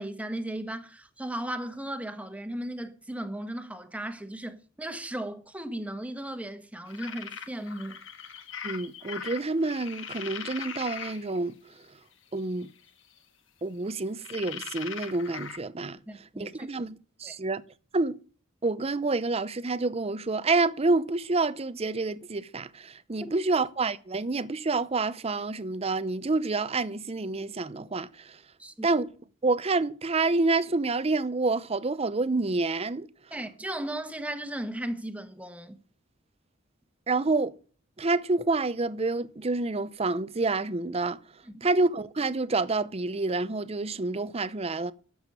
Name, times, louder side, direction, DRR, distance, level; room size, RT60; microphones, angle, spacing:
voice 1, 0.0-8.0 16.1-16.7 17.2-17.4 28.6-28.9 33.3-35.8, right 1 dB, 5° right, 1.3 m, -36 dB
sound 1, 6.9-11.4 12.3-12.9 14.2-15.6, left 7 dB, 65° left, 1.6 m, -40 dB
voice 2, 8.6-11.6 12.3-12.7 13.6-16.0 16.4-17.6 17.9-18.2 18.6-28.4 28.8-29.1 29.4-33.1 37.1-37.5 38.0-41.2 41.6-44.9, right 3 dB, 30° right, 0.6 m, -28 dB
12.5 x 7.2 x 8.5 m
head